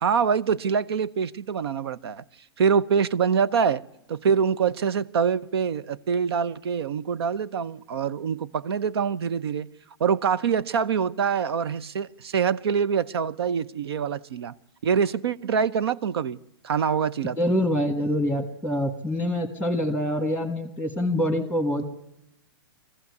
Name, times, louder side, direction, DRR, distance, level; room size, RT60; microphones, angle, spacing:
voice 1, 0.0-2.2 2.6-3.8 4.1-9.7 10.0-14.6 14.8-16.4 16.6-17.4, right 6 dB, 85° right, 0.8 m, -25 dB
voice 2, 17.4-21.8, left 1 dB, 5° right, 1.5 m, -25 dB
22.0 x 15.0 x 9.6 m
hypercardioid pair, 155°, 13 cm